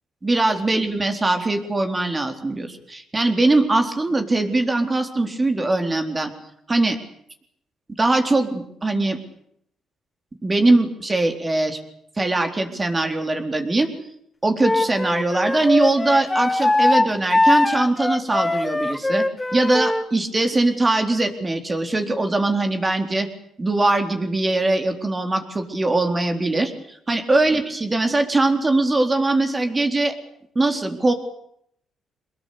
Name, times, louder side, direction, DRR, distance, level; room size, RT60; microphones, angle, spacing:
voice 1, 0.2-6.3 6.7-7.0 8.0-9.2 10.4-11.8 12.2-13.9 14.4-19.3 19.5-23.3 23.6-30.1 30.6-31.1, right 2 dB, 25° right, 6 dB, 4.0 m, -21 dB
Wind instrument woodwind instrument, 14.6-20.1, left 2 dB, 15° left, 1.1 m, -21 dB
24.5 x 21.0 x 8.6 m, 0.72 s
cardioid pair, 90°, 0 cm